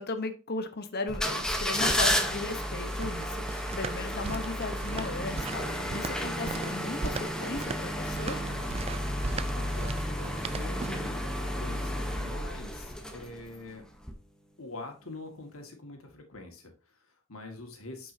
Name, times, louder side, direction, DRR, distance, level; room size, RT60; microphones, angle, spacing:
voice 1, 0.0-8.4, left 3 dB, 50° left, 1.1 m, -36 dB
sound 1, 1.1-13.6 14.0-14.1, equal, 5° left, 1.0 m, -32 dB
sound 2, 2.3-11.1, right 4 dB, 30° right, 0.4 m, -39 dB
sound 3, 3.8-9.5, equal, 55° right, 3.1 m, -51 dB
voice 2, 9.3-13.8 14.6-18.1, left 2 dB, 80° left, 2.1 m, -45 dB
9.1 x 5.4 x 2.8 m
head